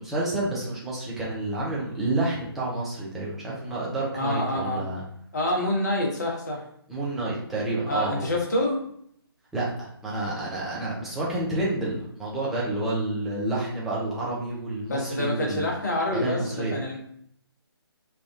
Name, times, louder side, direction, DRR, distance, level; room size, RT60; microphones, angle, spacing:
voice 1, 0.0-5.0 6.9-8.3 9.5-15.6 16.1-16.8, right 2 dB, ahead, -7 dB, 0.4 m, -29 dB
voice 2, 4.1-4.8 5.3-6.6 7.9-8.8 14.8-17.0, left 1 dB, 40° left, -1 dB, 1.0 m, -27 dB
3.4 x 2.4 x 2.4 m, 0.67 s
figure-of-eight pair, 145°, 13 cm